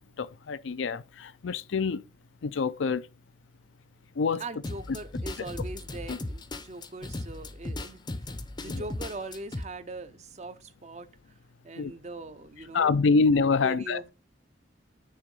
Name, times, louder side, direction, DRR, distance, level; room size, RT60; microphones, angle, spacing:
voice 1, 0.2-2.0 2.4-3.1 4.2-4.4 6.1-6.2 8.7-8.8 11.8-11.9 12.7-14.0, left 4 dB, 75° left, 0.5 m, -26 dB
voice 2, 4.4-11.4 11.6-13.3 13.6-14.1, right 2 dB, 35° right, 0.6 m, -41 dB
sound 1, 4.6-9.6, left 2 dB, 20° left, 0.6 m, -36 dB
9.0 x 3.7 x 5.3 m
head